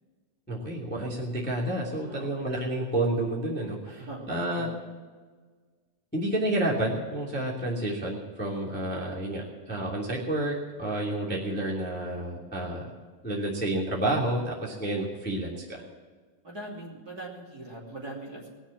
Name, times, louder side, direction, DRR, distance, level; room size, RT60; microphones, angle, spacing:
voice 1, 0.5-4.7 6.1-12.9 13.2-15.8, right 1 dB, 5° left, -4 dB, 2.2 m, -30 dB
voice 2, 2.1-2.5 3.8-4.8 16.4-18.5, right 1 dB, 30° right, -3 dB, 2.9 m, -41 dB
21.5 x 7.2 x 7.4 m, 1.5 s
omnidirectional pair, 4.1 m